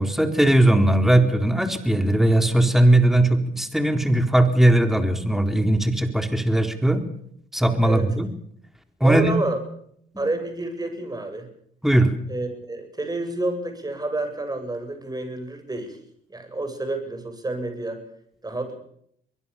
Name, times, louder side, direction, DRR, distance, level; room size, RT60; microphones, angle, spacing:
voice 1, 0.0-7.0 7.5-8.3 9.0-9.3 10.2-10.3 11.8-12.1, right 1 dB, ahead, 7 dB, 3.8 m, -19 dB
voice 2, 9.0-9.6 10.2-11.5 12.3-16.0 16.3-18.0 18.4-18.8, right 2 dB, 20° right, 7 dB, 7.9 m, -29 dB
24.0 x 20.5 x 7.1 m, 0.69 s
cardioid pair, 90°, 20 cm